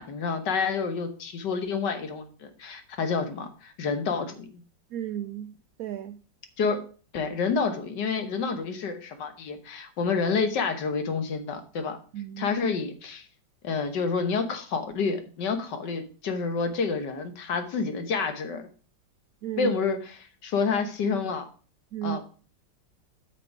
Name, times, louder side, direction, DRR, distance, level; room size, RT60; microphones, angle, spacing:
voice 1, 0.0-4.5 6.6-6.8 7.1-12.0 12.4-13.3 13.6-18.6 19.6-20.2 20.4-21.4 22.0-22.3, left 5 dB, 65° left, 1.7 m, -28 dB
voice 2, 4.9-5.5 5.8-6.2 12.1-12.5 19.4-19.7 21.9-22.2, right 11 dB, 85° right, 0.7 m, -33 dB
8.7 x 6.1 x 4.7 m
omnidirectional pair, 2.1 m